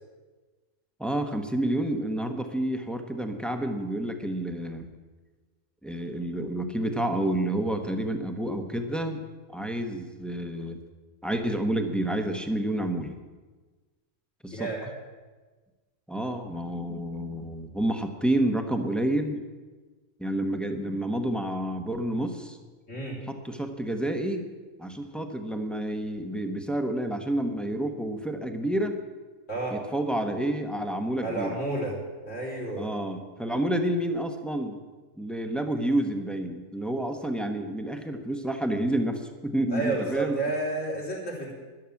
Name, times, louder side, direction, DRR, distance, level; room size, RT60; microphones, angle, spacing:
voice 1, 1.0-4.9 5.8-9.2 9.5-10.8 11.2-13.2 14.4-14.7 16.1-19.4 20.2-22.6 23.3-24.5 24.8-29.0 29.7-31.5 32.8-34.8 35.2-40.4, right 1 dB, ahead, 5 dB, 1.1 m, -29 dB
voice 2, 14.5-14.9 22.9-23.2 29.5-29.8 31.2-31.9 32.2-32.9 39.7-41.5, right 2 dB, 70° left, -4 dB, 4.5 m, -31 dB
12.5 x 11.0 x 7.2 m, 1.3 s
omnidirectional pair, 1.3 m